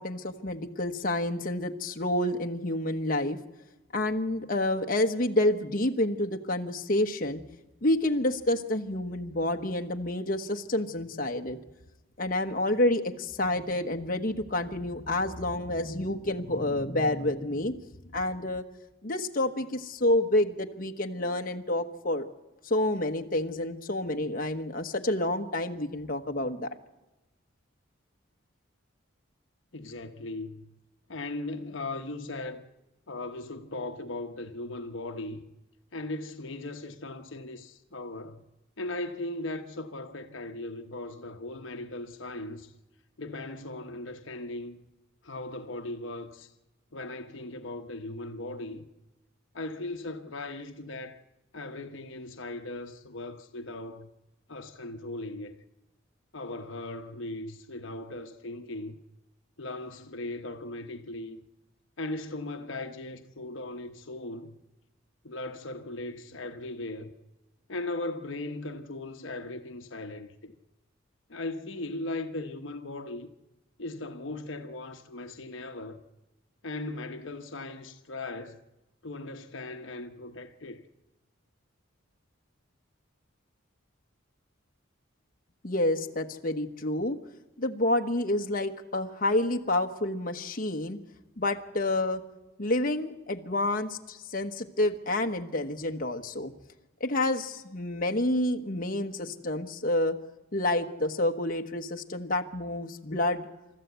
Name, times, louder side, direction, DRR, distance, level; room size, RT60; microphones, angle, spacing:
voice 1, 0.0-3.4 3.9-7.4 7.8-11.6 12.2-17.7 18.1-18.6 19.0-22.3 22.6-26.7 85.6-87.2 87.6-91.0 91.4-92.2 92.6-96.5 97.0-100.2 100.5-103.5, left 1 dB, 45° left, 1.2 m, -28 dB
voice 2, 29.7-30.8 31.1-32.6 33.1-35.4 35.9-38.4 38.8-42.7 43.2-44.9 45.2-46.5 46.9-48.8 49.5-51.2 51.5-54.1 54.5-55.5 56.3-59.0 59.6-61.4 62.0-64.6 65.2-67.1 67.7-70.6 71.3-73.3 73.8-76.0 76.6-78.6 79.0-80.8, left 2 dB, 70° left, 1.0 m, -38 dB
29.0 x 13.5 x 8.2 m
head